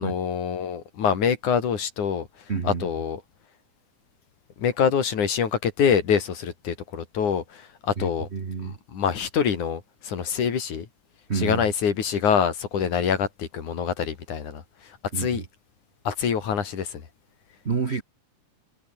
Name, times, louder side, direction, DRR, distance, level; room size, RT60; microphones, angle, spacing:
voice 1, 0.0-3.2 4.6-8.3 8.6-10.9 11.3-15.5 16.0-17.1, left 7 dB, 80° left, 4.4 m, -25 dB
voice 2, 2.5-2.9 8.0-8.7 11.3-11.6 15.1-15.4 17.6-18.0, right 5 dB, 80° right, 0.6 m, -29 dB
omnidirectional pair, 3.4 m